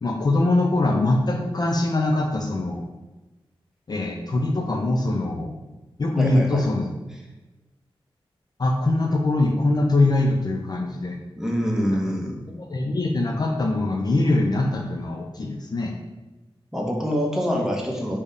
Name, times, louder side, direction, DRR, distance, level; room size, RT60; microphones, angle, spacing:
voice 1, 0.0-2.8 3.9-5.5 6.0-6.8 8.6-11.2 12.5-15.9, left 2 dB, 45° left, 1 dB, 0.4 m, -22 dB
voice 2, 6.2-6.6 11.3-12.4 16.7-18.2, equal, 5° right, -1 dB, 0.7 m, -25 dB
3.5 x 2.1 x 3.7 m, 1.1 s
cardioid pair, 60°, 10 cm